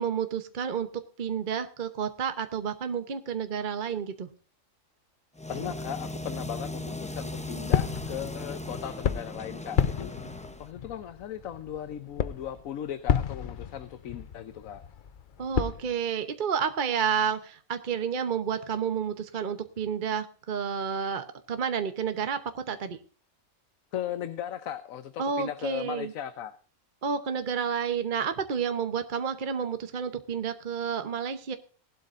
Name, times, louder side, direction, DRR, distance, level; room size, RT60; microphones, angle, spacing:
voice 1, 0.0-4.3 15.4-23.0 25.2-26.1 27.0-31.6, right 7 dB, 40° right, 8 dB, 1.0 m, -30 dB
sound 1, 5.4-10.7, left 1 dB, 10° left, 0.4 m, -38 dB
voice 2, 5.5-10.1 10.6-14.8 23.9-26.6, left 10 dB, 85° left, 11 dB, 1.2 m, -37 dB
sound 2, 7.3-15.9, left 8 dB, 50° left, 0.6 m, -32 dB
19.0 x 12.0 x 2.5 m, 0.39 s
omnidirectional pair, 1.4 m